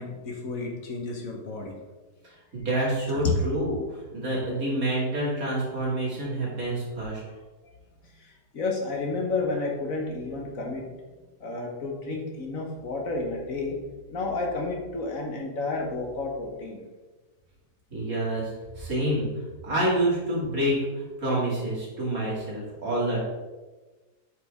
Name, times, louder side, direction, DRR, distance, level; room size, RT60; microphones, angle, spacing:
voice 1, 0.0-1.8 3.1-3.2 7.2-7.4 8.1-10.8 11.4-13.8 14.1-16.8, left 3 dB, 55° left, 1 dB, 1.4 m, -31 dB
voice 2, 2.2-7.2 17.9-19.3 19.6-23.2, right 1 dB, 55° right, -6 dB, 2.9 m, -28 dB
8.8 x 5.1 x 3.5 m, 1.2 s
omnidirectional pair, 1.8 m